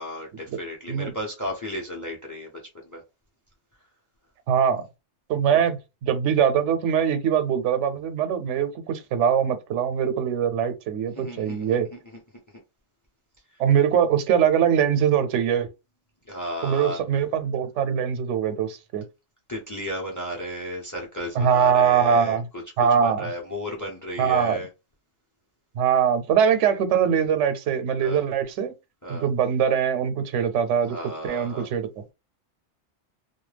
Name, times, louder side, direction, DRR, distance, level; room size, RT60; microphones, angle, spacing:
voice 1, 0.0-2.5 2.8-3.0 5.5-5.6 11.1-12.0 12.5-12.6 16.2-17.0 19.5-24.7 28.0-28.2 29.0-29.3 30.8-31.7, equal, 20° left, 0.5 m, -34 dB
voice 2, 4.5-4.8 5.3-11.9 13.6-15.7 16.6-19.0 21.4-22.4 22.8-23.3 24.2-24.6 25.8-28.7 29.1-32.1, right 8 dB, 80° right, 0.9 m, -22 dB
2.2 x 2.2 x 3.2 m
omnidirectional pair, 1.2 m